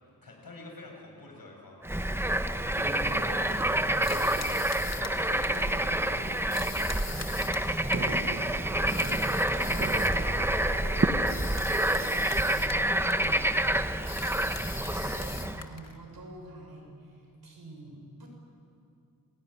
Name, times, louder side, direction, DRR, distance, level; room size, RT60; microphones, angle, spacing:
voice 1, 0.2-2.5 14.0-14.5, left 2 dB, 70° left, 0 dB, 7.2 m, -49 dB
Bird / Frog, 1.8-15.6, right 1 dB, 5° right, 1.0 m, -28 dB
voice 2, 2.6-7.5 8.0-9.2 9.5-18.3, right 1 dB, 90° right, 0 dB, 6.9 m, -46 dB
sound 1, 2.7-11.1, right 4 dB, 35° right, 1.1 m, -38 dB
sound 2, 4.0-5.8 6.5-8.2 8.9-10.3 11.3-12.9 13.1-13.4 14.1-16.0, left 4 dB, 45° left, 1.5 m, -42 dB
28.0 x 19.5 x 9.9 m, 2.4 s
wide cardioid pair, 120°, 36 cm